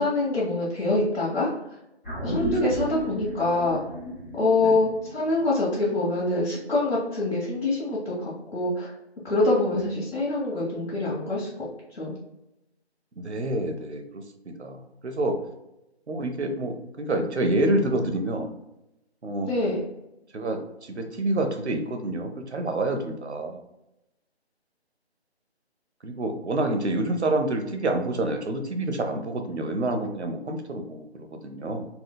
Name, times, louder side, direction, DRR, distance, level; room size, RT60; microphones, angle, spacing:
voice 1, 0.0-1.5 2.2-3.8 4.4-8.9 9.2-11.5 11.9-12.1 19.4-19.8, left 2 dB, 65° left, -8 dB, 1.5 m, -25 dB
sound 1, 2.0-6.6 7.0-7.1, equal, 10° left, 0.9 m, -35 dB
voice 2, 13.2-14.2 14.6-15.4 16.1-18.5 19.2-19.6 20.3-23.6 26.0-31.9, right 2 dB, 80° right, 5 dB, 0.8 m, -28 dB
4.3 x 2.2 x 2.2 m, 0.88 s
figure-of-eight pair, 155°, 33 cm